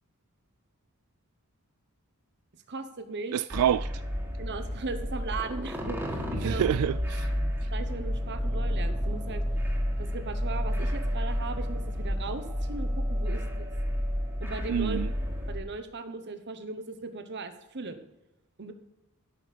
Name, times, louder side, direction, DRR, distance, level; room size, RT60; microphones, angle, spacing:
voice 1, 2.7-3.4 4.4-6.7 7.7-9.4 10.0-13.7 14.4-15.0 15.5-18.0 18.6-18.7, right 3 dB, 50° right, 1.1 m, -38 dB
voice 2, 3.3-3.9 6.4-7.3 14.7-15.1, right 9 dB, 90° right, 0.3 m, -27 dB
sound 1, 3.5-15.6, equal, 10° right, 1.8 m, -30 dB
13.0 x 6.3 x 6.9 m
head